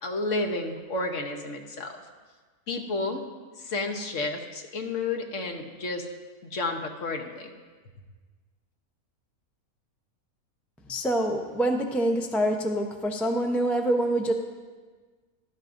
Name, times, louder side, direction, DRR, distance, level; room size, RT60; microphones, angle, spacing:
voice 1, 0.0-2.0 2.7-3.3 3.6-6.1 6.4-7.5, left 2 dB, 60° left, 3 dB, 1.3 m, -31 dB
voice 2, 10.9-14.3, right 1 dB, ahead, 2 dB, 0.5 m, -25 dB
15.5 x 12.5 x 2.6 m, 1.4 s
omnidirectional pair, 1.5 m